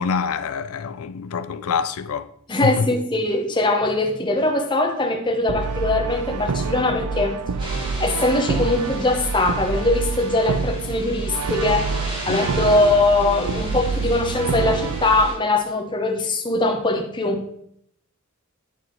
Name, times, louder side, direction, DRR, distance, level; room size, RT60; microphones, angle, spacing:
voice 1, 0.0-2.3 2.6-2.9 12.3-12.5, left 5 dB, 80° left, 0.4 m, -25 dB
voice 2, 2.5-7.4 8.0-11.9 12.3-17.5, left 2 dB, 20° left, 0.8 m, -21 dB
Brass instrument, 5.5-15.3, right 4 dB, 90° right, 0.4 m, -27 dB
sound 1, 7.6-15.3, equal, 20° right, 2.1 m, -37 dB
11.0 x 4.0 x 3.1 m
head